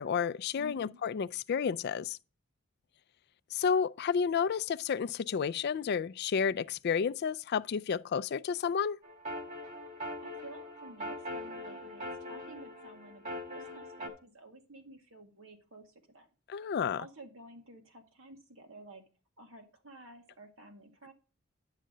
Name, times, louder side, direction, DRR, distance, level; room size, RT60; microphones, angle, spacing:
voice 1, 0.0-2.2 3.5-9.0 16.5-17.0, left 6 dB, 50° left, 0.3 m, -31 dB
voice 2, 0.5-1.0 10.2-16.3 16.6-19.0 19.4-21.1, right 2 dB, 80° right, 2.1 m, -53 dB
sound 1, 9.0-14.1, left 1 dB, 40° right, 2.2 m, -42 dB
10.5 x 6.5 x 3.8 m
head